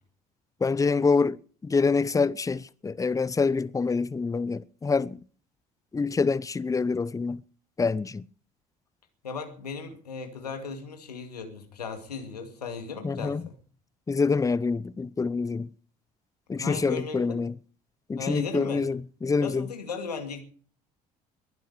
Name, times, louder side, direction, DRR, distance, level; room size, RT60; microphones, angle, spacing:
voice 1, 0.6-1.4 1.6-5.2 5.9-7.4 7.8-8.2 13.0-13.4 14.1-15.7 16.5-17.6 18.1-19.7, left 4 dB, 15° left, 0.8 m, -26 dB
voice 2, 9.2-13.6 16.6-17.4 18.2-18.9 19.4-20.4, left 5 dB, 80° left, 2.3 m, -36 dB
21.5 x 12.0 x 4.9 m
figure-of-eight pair, 55°, 20 cm